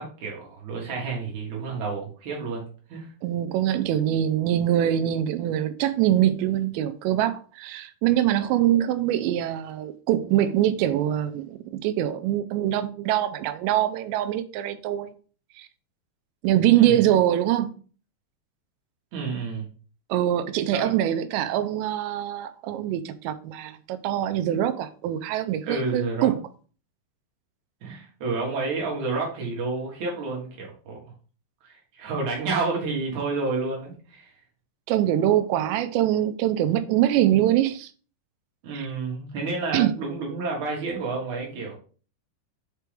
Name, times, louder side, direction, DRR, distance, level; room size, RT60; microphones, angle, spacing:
voice 1, 0.0-3.1 16.7-17.0 19.1-19.7 20.7-20.9 25.7-26.3 27.8-31.0 31.6-34.3 38.6-41.7, right 3 dB, 55° right, 2.2 m, -30 dB
voice 2, 3.2-15.1 15.6-15.7 16.4-17.7 20.1-26.4 34.9-37.9 38.7-38.9 39.7-39.9, right 12 dB, 85° right, 2.6 m, -23 dB
6.8 x 4.6 x 3.5 m
omnidirectional pair, 5.5 m